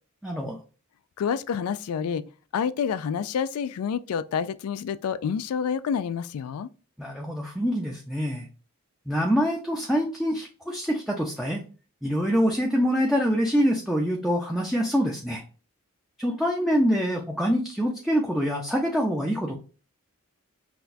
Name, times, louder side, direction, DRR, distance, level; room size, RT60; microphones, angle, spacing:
voice 1, 0.2-0.6 7.0-8.5 9.1-11.6 12.0-15.4 16.2-19.5, equal, ahead, 0.5 m, -25 dB
voice 2, 1.2-2.2 2.5-6.7, left 7 dB, 80° left, 0.3 m, -28 dB
5.8 x 2.2 x 2.6 m
head